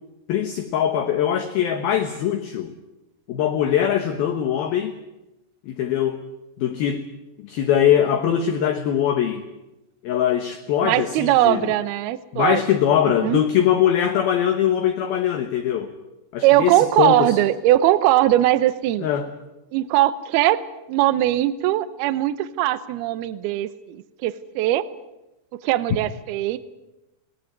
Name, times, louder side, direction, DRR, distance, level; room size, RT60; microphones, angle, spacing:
voice 1, 0.3-2.7 3.3-5.0 5.6-6.2 6.6-7.0 7.4-9.4 10.0-11.7 12.3-15.9 16.3-17.4 19.0-19.3, left 9 dB, 70° left, 7 dB, 2.5 m, -22 dB
voice 2, 10.8-12.6 13.2-13.4 16.4-19.1 19.7-20.6 20.9-24.9 25.6-26.6, right 14 dB, 75° right, 14 dB, 2.4 m, -20 dB
21.0 x 18.5 x 9.6 m, 0.96 s
omnidirectional pair, 5.5 m